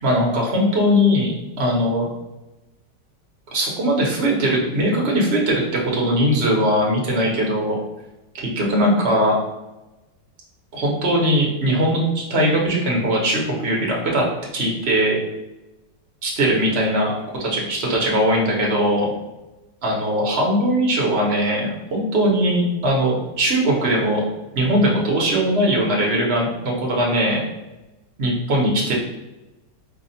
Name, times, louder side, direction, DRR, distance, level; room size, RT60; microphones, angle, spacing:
voice 1, 0.0-2.1 3.5-7.8 8.3-9.3 10.7-14.2 14.5-15.2 16.2-17.1 17.4-19.1 19.8-24.2 24.5-27.4 28.2-28.9, equal, 45° right, -2 dB, 1.0 m, -20 dB
4.8 x 2.3 x 2.7 m, 1.0 s
omnidirectional pair, 1.9 m